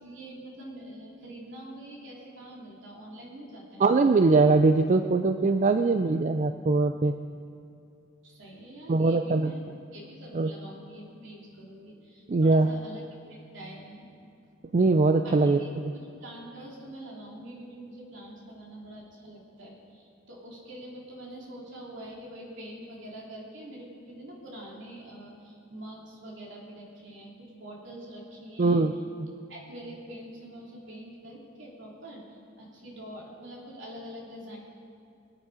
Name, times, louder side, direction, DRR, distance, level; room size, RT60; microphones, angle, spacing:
voice 1, 0.0-3.8 8.2-9.6 9.9-13.0 13.3-14.2 15.2-28.8 29.5-34.6, right 1 dB, 65° right, -3 dB, 3.3 m, -45 dB
voice 2, 3.8-7.1 8.9-9.5 10.3-10.5 12.3-12.7 14.7-15.9 28.6-28.9 29.2-29.3, right 3 dB, 35° right, 8 dB, 0.4 m, -22 dB
23.5 x 9.0 x 5.0 m, 2.5 s
head